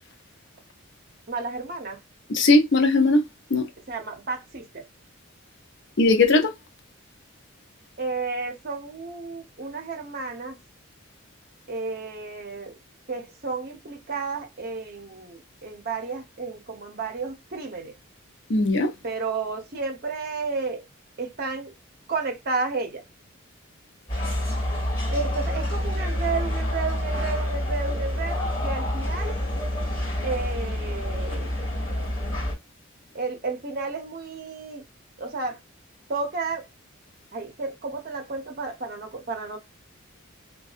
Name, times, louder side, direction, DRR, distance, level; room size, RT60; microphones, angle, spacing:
voice 1, 1.3-2.0 3.9-4.9 8.0-10.6 11.7-12.8 13.1-17.9 19.0-20.9 21.2-21.7 22.1-23.0 25.1-29.4 30.2-31.6 33.1-34.8 35.2-35.6 36.1-36.7 37.3-39.6, right 4 dB, 45° right, 0.7 m, -32 dB
voice 2, 2.3-3.2 3.5-3.7 6.0-6.5 18.5-18.9, left 2 dB, 55° left, 0.5 m, -18 dB
sound 1, 24.1-32.5, left 1 dB, 20° left, 1.8 m, -27 dB
2.6 x 2.3 x 2.4 m
head